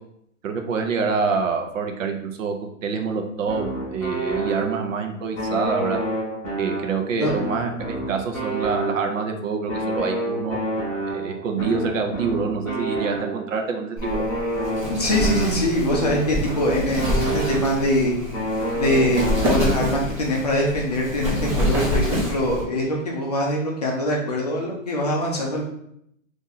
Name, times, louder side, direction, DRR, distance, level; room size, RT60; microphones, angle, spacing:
voice 1, 0.4-6.0 6.6-10.6 11.1-14.3, right 5 dB, 70° right, 4 dB, 0.7 m, -26 dB
sound 1, 3.5-5.0 5.4-9.3 9.7-13.6 14.0-18.0 18.3-20.2, right 1 dB, 10° left, 0.9 m, -29 dB
Wind, 14.0-22.6, equal, 25° right, 0.6 m, -27 dB
voice 2, 14.9-18.1 18.7-25.6, left 1 dB, 30° left, -2 dB, 0.5 m, -23 dB
2.7 x 2.6 x 3.8 m, 0.73 s
hypercardioid pair, 170°, 40 cm